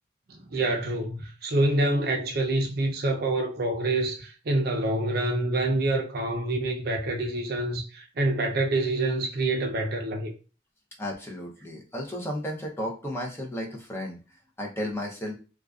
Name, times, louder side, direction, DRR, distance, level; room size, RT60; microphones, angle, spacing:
voice 1, 0.3-10.3, right 2 dB, 55° right, 0.5 m, -26 dB
voice 2, 11.0-14.2 14.6-15.4, equal, 15° left, 0.5 m, -33 dB
2.4 x 2.3 x 2.3 m
head